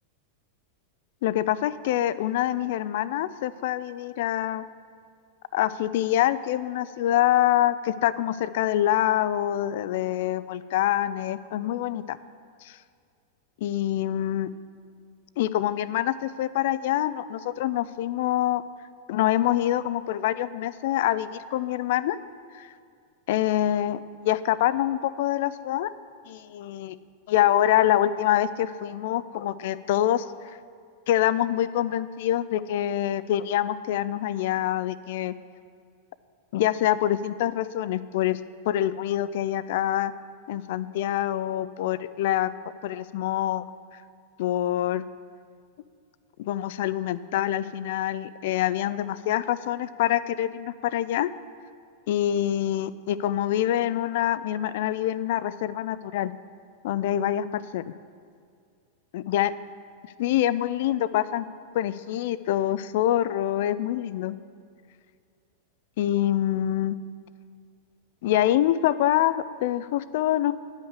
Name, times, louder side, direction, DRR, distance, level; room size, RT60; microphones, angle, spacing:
voice 1, 1.2-4.6 5.5-12.2 12.6-12.8 13.6-14.5 15.4-18.6 19.1-22.2 22.5-22.7 23.3-25.9 26.3-27.0 27.3-30.3 31.1-35.3 36.5-38.4 38.7-40.1 40.5-42.5 42.8-43.7 44.4-45.0 46.4-51.3 52.1-56.3 56.8-57.8 59.1-59.5 60.2-61.5 61.7-64.4 66.0-67.0 68.2-70.5, left 12 dB, 60° left, 16 dB, 0.4 m, -25 dB
9.8 x 5.7 x 8.0 m, 2.2 s
figure-of-eight pair, 95°, 0 cm